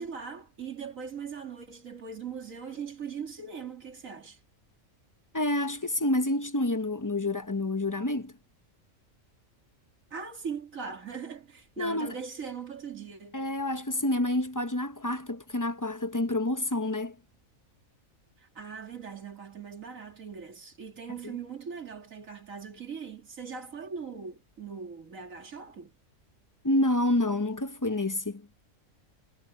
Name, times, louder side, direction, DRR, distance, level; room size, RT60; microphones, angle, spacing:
voice 1, 0.0-4.4 10.1-13.4 18.4-25.9, right 6 dB, 85° right, 2.9 m, -40 dB
voice 2, 5.3-8.3 11.8-12.2 13.3-17.2 21.2-21.3 26.6-28.5, left 1 dB, 20° left, 0.7 m, -28 dB
omnidirectional pair, 1.4 m